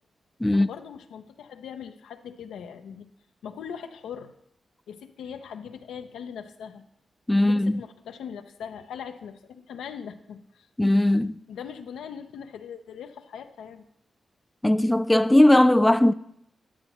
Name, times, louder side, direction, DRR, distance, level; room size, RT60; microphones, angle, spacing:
voice 1, 0.5-3.1 3.4-4.3 4.9-6.8 7.4-10.7 11.5-13.9, left 7 dB, 90° left, 0.5 m, -40 dB
voice 2, 7.3-7.8 10.8-11.4 14.6-16.1, left 1 dB, 15° left, 0.3 m, -19 dB
9.5 x 8.8 x 3.0 m
supercardioid pair, 45°, 0 cm